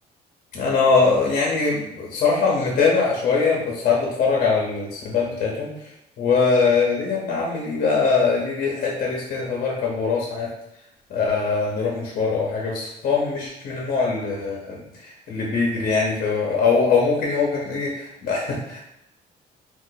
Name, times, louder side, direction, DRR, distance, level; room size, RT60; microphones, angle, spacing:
voice 1, 0.5-5.7 6.2-10.5 11.1-18.8, left 4 dB, 55° left, -2 dB, 0.8 m, -22 dB
2.5 x 2.5 x 3.9 m, 0.85 s
cardioid pair, 110°, 17 cm